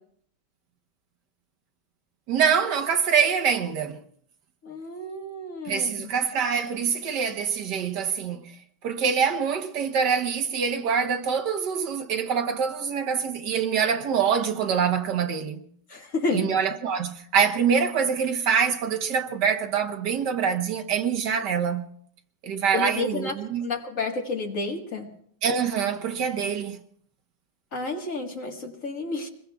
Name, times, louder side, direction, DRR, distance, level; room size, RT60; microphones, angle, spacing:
voice 1, 2.3-4.0 5.6-8.5 8.8-15.6 16.3-21.9 22.4-23.7 25.4-26.8, right 6 dB, 75° right, 1.6 m, -25 dB
voice 2, 4.6-5.9 15.9-16.5 22.7-23.3 23.6-25.1 27.7-29.3, left 3 dB, 50° left, 1.9 m, -30 dB
27.0 x 21.5 x 2.3 m
omnidirectional pair, 1.9 m